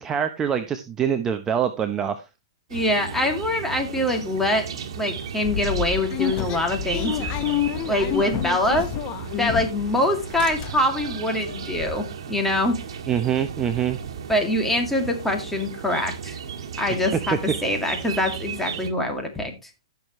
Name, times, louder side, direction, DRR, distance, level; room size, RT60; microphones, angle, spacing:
voice 1, 0.0-2.2 13.1-14.0, right 8 dB, 20° right, 8 dB, 0.8 m, -24 dB
voice 2, 2.7-4.7 5.0-7.3 7.9-8.9 9.4-12.8 14.3-16.4 16.8-17.4 17.6-19.5, left 1 dB, 5° left, 3 dB, 2.4 m, -24 dB
sound 1, 2.7-18.9, right 7 dB, 65° right, 1.9 m, -35 dB
sound 2, 5.4-9.9 10.2-11.1 11.4-11.5 11.7-12.0, left 11 dB, 35° left, 1.3 m, -28 dB
15.5 x 6.5 x 3.1 m, 0.25 s
hypercardioid pair, 130°, 3 cm